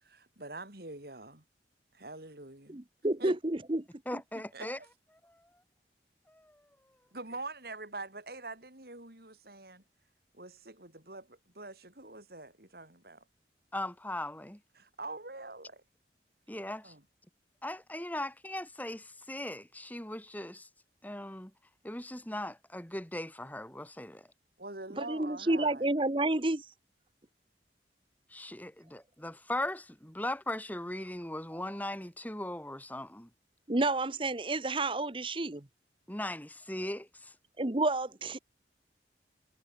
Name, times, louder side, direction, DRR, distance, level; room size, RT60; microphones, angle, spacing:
voice 1, 0.0-1.4 1.9-2.8 3.2-3.4 4.5-4.7 7.1-9.8 10.3-13.2 14.7-15.8 16.8-17.0 24.6-25.8, right 2 dB, 60° right, 4.6 m, -44 dB
voice 2, 2.7-3.8 25.0-26.6 33.7-35.7 37.6-38.4, right 2 dB, 30° right, 1.0 m, -30 dB
voice 3, 4.1-4.8 6.3-6.6 13.7-14.6 16.5-16.9 17.6-20.7 21.0-21.5 21.8-24.3 28.3-33.3 36.1-37.3, left 1 dB, 10° left, 2.6 m, -39 dB
head